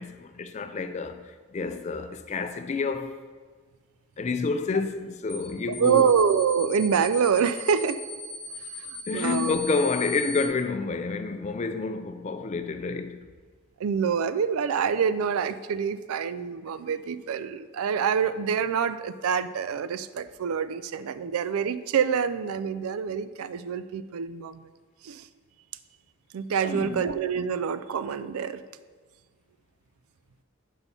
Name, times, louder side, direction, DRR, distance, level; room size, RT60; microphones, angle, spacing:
voice 1, 0.0-3.2 4.2-6.1 9.1-13.2 26.6-27.0, left 4 dB, 30° left, 0.3 m, -29 dB
sound 1, 5.3-5.5 5.7-10.5, left 2 dB, 40° right, 2.0 m, -38 dB
voice 2, 5.7-8.0 8.8-9.5 13.8-24.7 25.0-25.3 26.3-28.6, right 7 dB, 85° right, 0.4 m, -26 dB
6.2 x 5.5 x 5.5 m
head